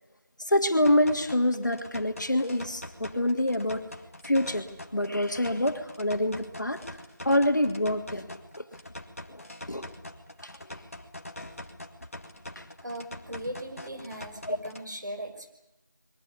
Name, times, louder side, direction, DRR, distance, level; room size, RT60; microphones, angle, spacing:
voice 1, 0.5-3.8 4.2-4.7 4.9-6.8 7.2-8.3 8.6-8.7 9.3-9.4 9.7-9.8 10.4-10.5 12.6-12.7 14.5-14.6, left 1 dB, 65° left, 5 dB, 2.9 m, -26 dB
sound 1, 0.8-14.9, left 1 dB, 45° left, 2.1 m, -44 dB
voice 2, 12.8-15.5, right 1 dB, 65° right, 5 dB, 5.6 m, -38 dB
23.0 x 21.0 x 8.5 m, 0.93 s
figure-of-eight pair, 175°, 11 cm